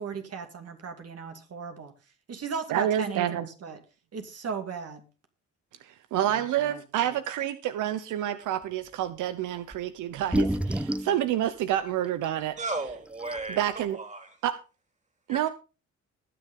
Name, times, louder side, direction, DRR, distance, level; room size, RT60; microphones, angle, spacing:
voice 1, 0.0-1.9 2.3-3.8 4.1-5.0 6.3-7.2, right 5 dB, 55° right, 6 dB, 2.6 m, -37 dB
voice 2, 2.7-3.5 5.8-12.6 13.5-14.0 14.4-14.5 15.3-15.5, right 11 dB, 85° right, 12 dB, 0.9 m, -28 dB
sound 1, 9.7-9.8 10.2-11.2 12.2-12.3 12.9-13.0 13.2-13.6, right 1 dB, 5° right, 0.6 m, -28 dB
voice 3, 12.6-13.6 13.9-14.4 15.3-15.5, right 2 dB, 25° right, 6 dB, 3.8 m, -35 dB
20.0 x 6.8 x 3.8 m, 0.32 s
cardioid pair, 90°, 30 cm